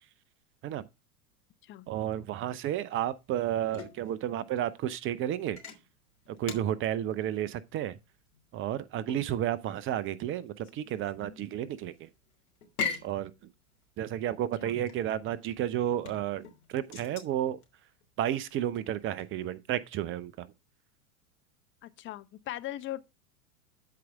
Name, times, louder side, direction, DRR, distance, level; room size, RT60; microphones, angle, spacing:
voice 1, 1.9-5.6 6.4-8.0 8.5-11.9 13.0-13.3 14.0-16.4 16.7-17.6 18.2-20.5, right 11 dB, 30° right, 0.6 m, -32 dB
sound 1, 2.9-19.4, left 5 dB, 70° left, 3.3 m, -43 dB
voice 2, 21.8-23.0, left 14 dB, 25° left, 0.8 m, -39 dB
13.5 x 4.7 x 3.5 m
figure-of-eight pair, 90°, 45 cm